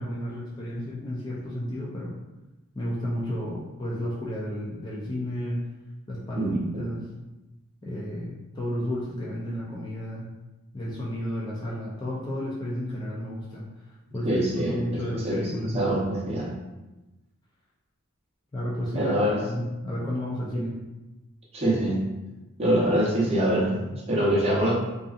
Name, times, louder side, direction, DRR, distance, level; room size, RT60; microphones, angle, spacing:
voice 1, 0.0-2.2 2.7-5.6 6.1-7.1 7.8-10.3 10.7-13.6 14.1-16.1 18.5-19.2 19.4-20.7, equal, 20° left, -5 dB, 0.3 m, -32 dB
voice 2, 6.4-6.9 14.2-16.5 18.9-19.4 20.5-20.7 21.5-22.1 22.6-24.7, right 1 dB, 30° right, -5 dB, 0.6 m, -25 dB
2.6 x 2.4 x 2.4 m, 1.0 s
head